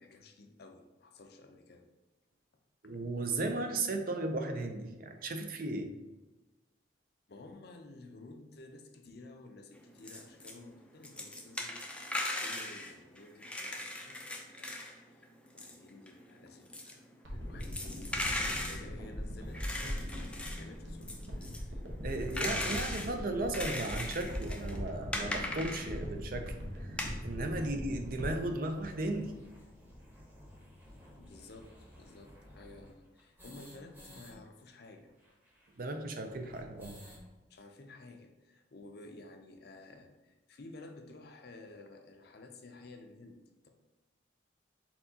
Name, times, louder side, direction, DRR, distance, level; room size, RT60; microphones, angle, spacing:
voice 1, 0.0-1.9 7.3-14.8 15.5-22.9 31.2-35.1 37.5-43.7, left 2 dB, 60° left, 5 dB, 0.5 m, -53 dB
voice 2, 2.8-5.9 22.0-29.3 35.7-37.0, right 2 dB, 50° right, 5 dB, 0.5 m, -36 dB
sound 1, 9.8-10.5 10.8-15.0 15.2-26.2 26.7-27.1, left 1 dB, 5° left, 0.4 m, -38 dB
sound 2, 17.2-29.7 30.0-30.1, equal, 85° right, 1.0 m, -41 dB
sound 3, 26.4-26.5 26.8-26.9 27.2-27.3 27.6-34.3 34.6-34.7 34.9-37.3, equal, 10° right, 1.0 m, -56 dB
4.4 x 3.9 x 2.8 m, 1.1 s
head